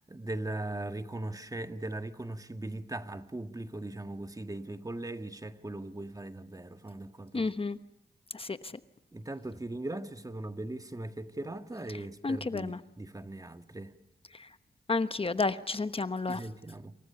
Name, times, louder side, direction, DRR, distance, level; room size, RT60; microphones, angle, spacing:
voice 1, 0.0-7.5 9.1-13.9 16.3-16.9, right 2 dB, 20° right, 1.7 m, -39 dB
voice 2, 7.3-7.8 8.3-8.7 12.2-12.8 14.4-14.5 14.9-16.4, left 3 dB, 35° left, 1.1 m, -31 dB
28.5 x 28.0 x 6.9 m
wide cardioid pair, 85°, 17 cm